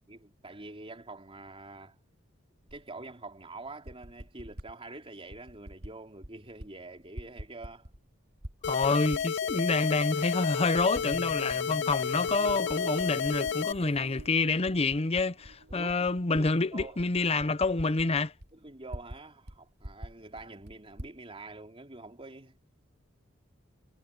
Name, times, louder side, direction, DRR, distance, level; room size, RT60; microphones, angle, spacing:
voice 1, 0.1-2.0 2.7-7.9 15.7-16.1 16.4-17.0 17.4-17.5 18.5-22.7, right 2 dB, 30° right, 3.6 m, -46 dB
Typing, 2.7-2.8 3.7-4.7 5.3-5.9 6.2-6.7 7.0-8.1 8.4-9.6 10.1-10.2 10.8-11.6 11.9-14.3 14.6-19.2 19.5-19.6 19.8-21.2, equal, 55° right, 2.5 m, -45 dB
sound 1, 8.6-13.7, left 7 dB, 60° left, 0.5 m, -31 dB
voice 2, 8.6-18.3, left 3 dB, 30° left, 0.7 m, -28 dB
sound 2, 10.9-16.7, right 4 dB, 80° right, 0.6 m, -47 dB
head